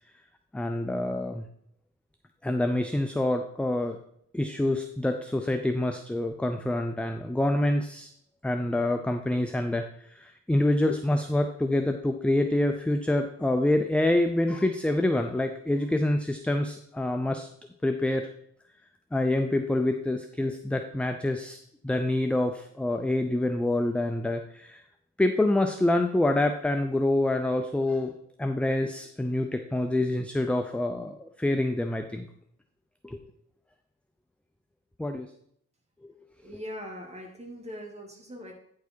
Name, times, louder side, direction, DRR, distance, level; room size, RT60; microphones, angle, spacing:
voice 1, 0.5-1.4 2.4-4.0 4.3-8.1 8.4-17.5 17.8-18.3 19.1-21.6 21.8-24.8 25.2-28.1 28.4-32.3 33.0-33.2 35.0-35.3, left 1 dB, 5° left, 6 dB, 0.6 m, -26 dB
voice 2, 36.4-38.5, equal, 20° right, 1 dB, 2.3 m, -41 dB
9.5 x 4.8 x 4.5 m, 0.68 s
cardioid pair, 90°, 30 cm